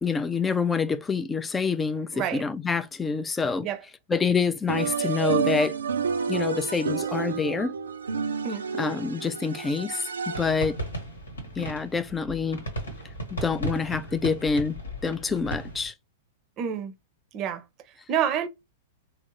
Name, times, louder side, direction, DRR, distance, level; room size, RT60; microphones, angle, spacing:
voice 1, 0.0-3.7 4.1-5.7 6.3-7.7 8.8-10.8 11.6-12.6 13.3-14.8 15.0-15.9, left 5 dB, 15° left, 0.4 m, -27 dB
voice 2, 2.1-2.4 3.6-3.8 8.4-8.6 16.6-16.9 17.3-17.6 18.1-18.5, right 9 dB, 35° right, 0.6 m, -28 dB
sound 1, 4.7-10.8, right 6 dB, 80° right, 0.4 m, -29 dB
sound 2, 10.3-15.9, right 1 dB, 85° left, 1.1 m, -36 dB
3.5 x 2.0 x 3.0 m
hypercardioid pair, 105°, 0 cm